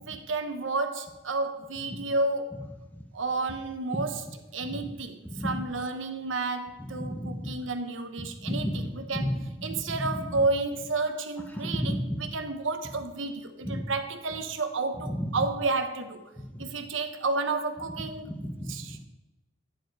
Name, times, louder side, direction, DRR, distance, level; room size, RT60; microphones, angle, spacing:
voice 1, 0.1-2.6 3.1-4.2 4.5-9.3 9.6-12.0 12.3-16.3 16.6-18.3 18.7-19.0, right 3 dB, 85° right, 1.1 m, -31 dB
voice 2, 5.2-5.6 6.8-7.6 8.2-10.4 11.5-12.3 13.6-13.8 15.1-15.4 16.4-16.6 18.2-19.0, equal, 10° left, 1.4 m, -33 dB
11.0 x 9.4 x 4.8 m
head